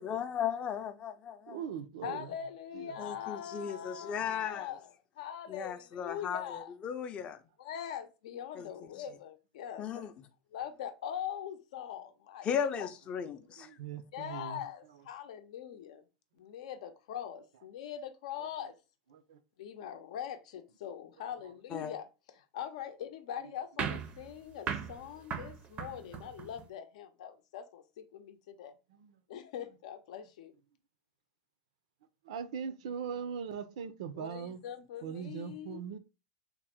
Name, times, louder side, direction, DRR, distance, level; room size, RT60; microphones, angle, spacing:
voice 1, 0.0-1.6 3.0-4.7 5.5-7.4 8.6-8.7 9.8-10.1 12.4-13.8 21.7-21.9, left 8 dB, 30° left, 0.4 m, -36 dB
voice 2, 1.5-2.3 2.7-3.0 13.6-14.7 18.4-18.5 19.1-19.4 23.4-23.5 26.0-26.2 28.9-29.2 32.2-34.6 35.0-36.0, right 7 dB, 85° right, 0.5 m, -41 dB
voice 3, 2.0-6.7 7.6-10.0 10.5-12.5 12.8-12.9 14.1-16.0 16.4-18.7 19.6-22.1 22.4-28.7 29.3-30.5 34.2-35.8, left 9 dB, 85° left, 0.6 m, -42 dB
sound 1, 23.8-26.7, right 7 dB, 35° right, 0.4 m, -39 dB
3.6 x 2.0 x 4.3 m
supercardioid pair, 140°, 4 cm